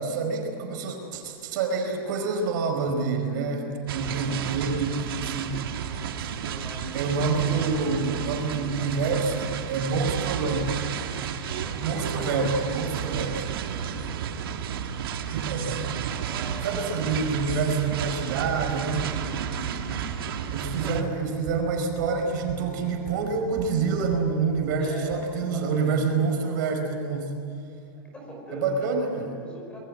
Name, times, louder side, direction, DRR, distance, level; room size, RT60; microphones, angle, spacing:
voice 1, 0.0-5.6 6.9-10.8 11.8-13.5 15.3-15.9 16.6-19.1 20.5-27.3 28.5-29.3, right 4 dB, 60° right, 3 dB, 5.1 m, -27 dB
sound 1, 3.9-21.0, right 8 dB, 80° right, 2.1 m, -32 dB
voice 2, 4.0-4.4 6.0-8.1 8.4-8.6 11.5-12.6 13.6-15.0 16.2-17.2 19.1-21.1 24.8-26.0 28.0-28.8 29.0-29.8, equal, 10° left, 1 dB, 5.2 m, -42 dB
sound 2, 7.2-7.3 7.6-8.3 8.6-9.3 9.6-9.8 10.1-10.2 10.5-11.3 11.5-12.2 12.5-25.3, right 7 dB, 40° right, 6.5 m, -43 dB
27.0 x 21.5 x 9.0 m, 2.4 s
supercardioid pair, 165°, 12 cm